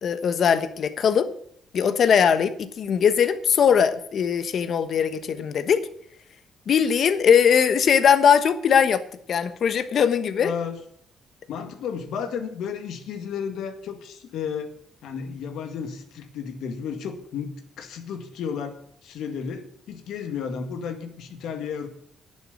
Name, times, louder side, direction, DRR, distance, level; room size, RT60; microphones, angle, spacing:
voice 1, 0.0-1.3 1.7-5.9 6.7-10.5, left 7 dB, 60° left, 12 dB, 1.2 m, -20 dB
voice 2, 10.4-10.8 11.5-14.7 15.0-21.9, left 6 dB, 80° left, 8 dB, 1.9 m, -33 dB
10.5 x 7.4 x 9.5 m, 0.65 s
cardioid pair, 90°, 0 cm